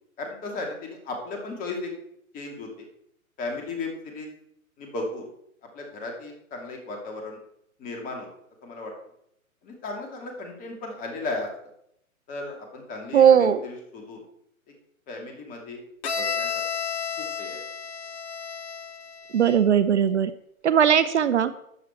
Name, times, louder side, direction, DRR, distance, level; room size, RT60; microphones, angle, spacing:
voice 1, 0.2-1.9 2.3-2.7 3.4-4.3 4.8-5.3 5.7-7.4 7.8-8.3 8.6-8.9 9.6-11.5 12.3-14.2 15.1-15.8 16.1-16.5 17.2-17.6, left 3 dB, 20° left, 2.5 m, -35 dB
voice 2, 13.1-13.6 19.3-20.3 20.6-21.5, right 8 dB, 55° right, 0.7 m, -18 dB
Bowed string instrument, 16.0-19.8, left 6 dB, 50° left, 1.3 m, -32 dB
13.0 x 9.2 x 4.5 m
figure-of-eight pair, 130°, 42 cm